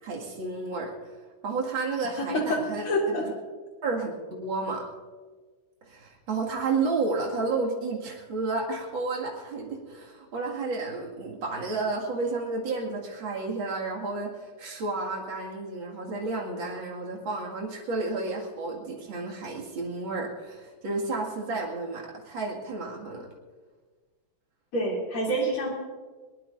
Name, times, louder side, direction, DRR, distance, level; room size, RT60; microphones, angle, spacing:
voice 1, 0.0-0.9 1.4-2.8 3.2-3.3 3.8-4.8 5.8-23.3, right 3 dB, 65° right, -1 dB, 2.9 m, -31 dB
voice 2, 2.2-3.3 24.7-25.7, equal, 80° left, -2 dB, 4.2 m, -27 dB
21.0 x 20.0 x 2.6 m, 1.4 s
omnidirectional pair, 2.3 m